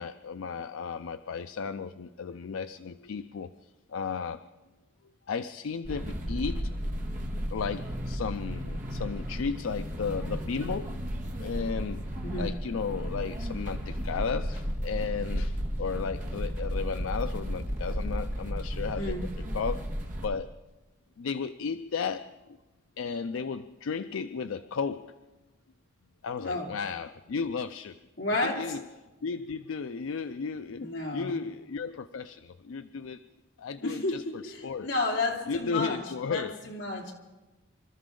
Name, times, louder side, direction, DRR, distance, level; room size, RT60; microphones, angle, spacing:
voice 1, 0.0-3.5 3.9-4.4 5.3-6.7 7.5-10.9 11.4-12.0 12.4-19.9 20.2-20.5 21.2-22.3 23.0-25.1 26.2-28.0 28.4-28.8 29.2-33.2 33.6-34.9 35.5-36.7, left 5 dB, 75° left, 11 dB, 0.4 m, -34 dB
sound 1, 5.8-20.3, equal, 40° right, 1.6 m, -33 dB
voice 2, 12.2-12.6 19.0-19.2 26.4-26.7 28.2-28.6 30.8-31.4 33.8-36.0 36.3-37.1, left 2 dB, 55° left, -1 dB, 2.8 m, -31 dB
26.0 x 13.0 x 3.8 m, 1.1 s
head